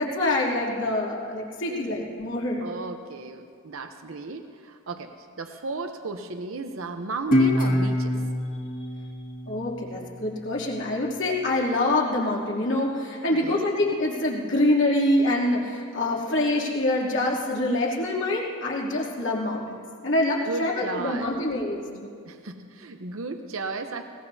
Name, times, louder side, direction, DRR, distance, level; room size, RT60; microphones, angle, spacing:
voice 1, 0.0-2.6 9.5-22.1, left 1 dB, 65° left, -4 dB, 2.8 m, -25 dB
voice 2, 2.6-5.1 5.4-8.2 13.3-13.7 20.4-21.4 22.3-24.1, right 3 dB, 80° right, 6 dB, 0.8 m, -34 dB
Guitar, 7.3-10.5, left 1 dB, 40° left, 1.7 m, -25 dB
21.5 x 20.0 x 2.8 m, 2.2 s
head